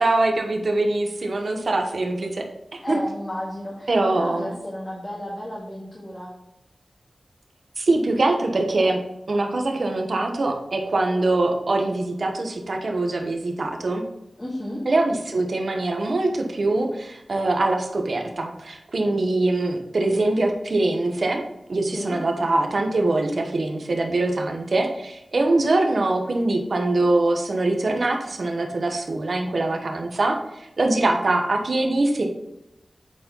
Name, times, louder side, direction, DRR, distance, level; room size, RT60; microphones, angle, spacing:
voice 1, 0.0-2.4 2.9-3.0 3.9-4.5 7.8-9.0 9.3-14.0 14.9-21.4 21.7-32.3, right 2 dB, 70° right, 3 dB, 1.1 m, -23 dB
voice 2, 2.8-6.3 14.4-14.8 21.9-22.2, left 1 dB, 30° left, -6 dB, 2.0 m, -33 dB
8.5 x 4.3 x 3.9 m, 0.88 s
wide cardioid pair, 60°, 0 cm